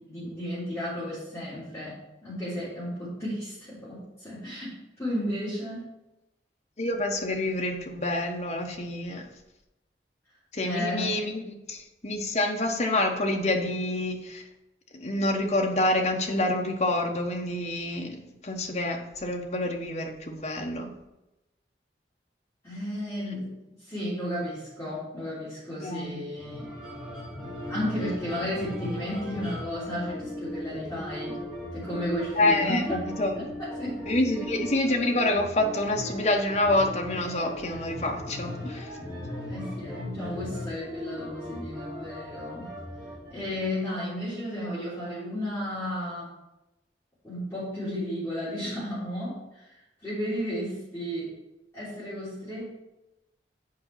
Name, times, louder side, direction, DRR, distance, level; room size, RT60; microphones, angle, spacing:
voice 1, 0.1-4.7 5.0-5.9 10.6-11.5 22.6-26.7 27.4-31.4 31.7-33.0 33.4-34.1 37.4-37.5 39.5-42.7 43.3-46.3 47.2-49.7 50.0-51.3 51.7-52.8, equal, 15° left, -12 dB, 3.4 m, -33 dB
voice 2, 6.8-9.3 10.5-14.4 14.9-20.9 25.8-26.2 32.4-33.5 34.1-38.9, left 1 dB, 40° left, 2 dB, 1.0 m, -27 dB
sound 1, 26.4-43.7, left 1 dB, 5° right, 2.6 m, -38 dB
7.7 x 5.0 x 5.7 m, 0.95 s
head